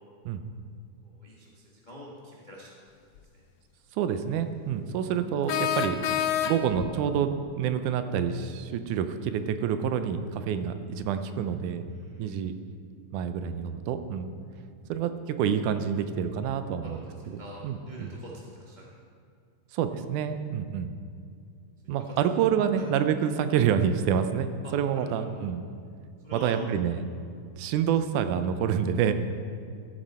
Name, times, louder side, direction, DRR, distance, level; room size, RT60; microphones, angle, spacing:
voice 1, 1.0-2.8 11.9-12.2 16.8-17.6 17.8-18.8 22.0-22.1 22.7-22.8 24.6-25.4 26.2-26.6, equal, 40° left, -5 dB, 0.6 m, -45 dB
sound 1, 3.2-3.3 5.5-6.9, left 10 dB, 80° left, 1.6 m, -28 dB
voice 2, 3.9-6.0 6.4-11.9 12.2-12.5 13.1-14.3 14.9-18.1 19.7-20.9 21.9-25.7 26.3-27.1 27.6-29.1, right 8 dB, 85° right, 9 dB, 2.1 m, -28 dB
14.5 x 8.0 x 4.2 m, 2.3 s
omnidirectional pair, 3.5 m